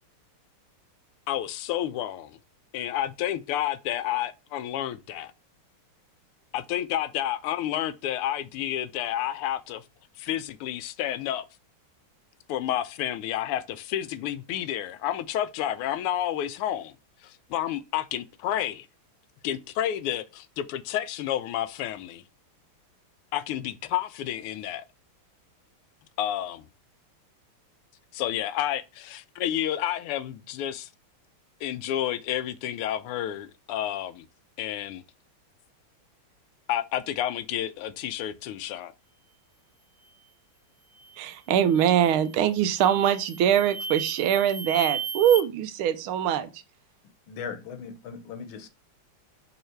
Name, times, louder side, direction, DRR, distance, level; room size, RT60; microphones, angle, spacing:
voice 1, 1.3-2.4 2.7-5.3 6.5-9.8 10.2-11.4 12.5-16.9 17.2-18.9 19.4-22.2 23.3-24.8 26.2-26.6 28.1-30.9 31.6-34.3 34.6-35.0 36.7-38.9, left 11 dB, 85° left, 1.5 m, -30 dB
sound 1, 41.0-41.3 41.7-42.3 42.8-45.4, right 4 dB, 40° right, 0.5 m, -35 dB
voice 2, 41.2-46.5, right 9 dB, 75° right, 1.4 m, -23 dB
voice 3, 47.3-48.7, left 6 dB, 70° left, 1.6 m, -38 dB
5.5 x 3.9 x 4.4 m
omnidirectional pair, 2.4 m